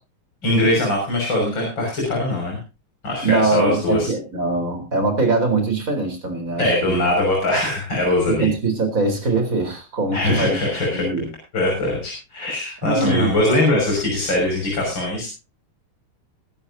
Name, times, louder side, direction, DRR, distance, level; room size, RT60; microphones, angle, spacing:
voice 1, 0.4-2.6 3.0-4.1 6.6-8.5 10.1-11.0 11.5-15.3, left 1 dB, 55° left, -1 dB, 6.8 m, -21 dB
voice 2, 3.2-7.0 8.3-11.3 12.8-13.3, right 3 dB, 35° right, 7 dB, 4.3 m, -22 dB
23.0 x 11.5 x 2.7 m, 0.30 s
omnidirectional pair, 2.4 m